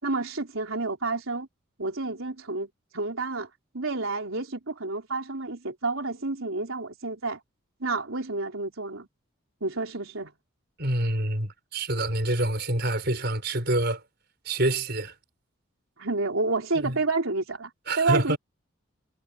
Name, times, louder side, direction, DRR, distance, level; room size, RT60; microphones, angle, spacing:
voice 1, 0.0-1.5 1.8-2.7 2.9-3.5 3.7-7.4 7.8-9.1 9.6-10.3 16.0-17.7 18.0-18.4, right 3 dB, 85° right, 3.8 m, -29 dB
voice 2, 10.8-14.0 14.4-15.2 16.8-17.0 17.9-18.4, right 1 dB, 50° right, 5.2 m, -27 dB
head